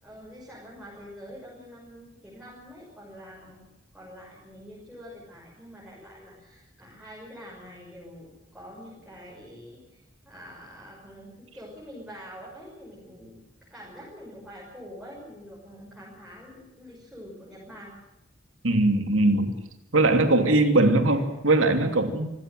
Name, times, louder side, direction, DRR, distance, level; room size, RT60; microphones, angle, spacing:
voice 1, 0.0-13.4 13.7-17.9 21.0-21.2 21.8-22.0, equal, 5° right, -5 dB, 6.2 m, -46 dB
voice 2, 18.6-19.6 19.9-22.3, right 2 dB, 90° right, 6 dB, 2.9 m, -21 dB
26.0 x 14.5 x 7.8 m, 0.98 s
head